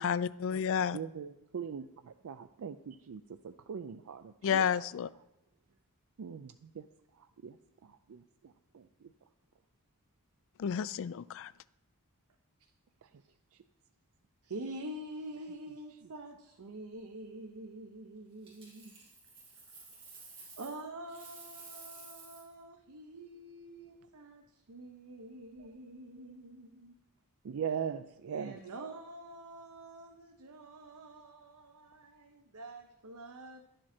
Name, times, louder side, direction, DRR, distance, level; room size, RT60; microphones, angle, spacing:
voice 1, 0.0-1.0 4.4-5.1 10.6-11.5, left 7 dB, 60° left, 0.3 m, -31 dB
voice 2, 0.9-4.7 6.2-6.8 7.2-7.6 7.8-9.1 27.4-28.6, right 7 dB, 70° right, 0.4 m, -41 dB
voice 3, 14.4-19.0 20.6-26.9 28.3-33.6, right 1 dB, 85° right, 0.8 m, -46 dB
Coin (dropping), 18.4-20.8 21.1-22.5 25.4-25.6, right 4 dB, 25° right, 3.2 m, -52 dB
11.0 x 7.6 x 4.3 m
head